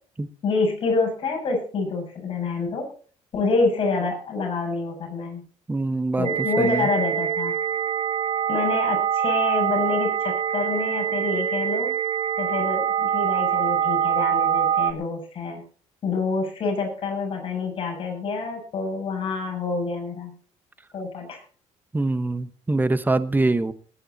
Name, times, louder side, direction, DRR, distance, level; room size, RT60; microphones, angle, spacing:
voice 1, 0.4-2.9 3.3-5.4 6.2-7.5 8.5-11.9 12.4-15.6 16.0-20.3 20.9-21.4, left 3 dB, 45° left, 1 dB, 7.4 m, -27 dB
voice 2, 5.7-6.3 6.6-6.9 21.9-23.7, right 2 dB, 15° right, 13 dB, 1.2 m, -23 dB
sound 1, 6.2-14.9, right 9 dB, 50° right, 1.1 m, -24 dB
20.5 x 10.0 x 4.2 m, 0.43 s
cardioid pair, 105°, 12 cm